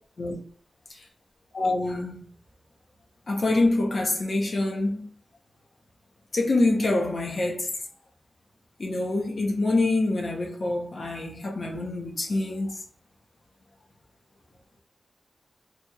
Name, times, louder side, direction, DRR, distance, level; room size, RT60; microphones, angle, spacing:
voice 1, 1.5-2.2 3.3-5.0 6.3-7.7 8.8-12.8, left 2 dB, 50° left, 0.8 m, -25 dB
2.9 x 2.8 x 2.3 m
wide cardioid pair, 130°, 0 cm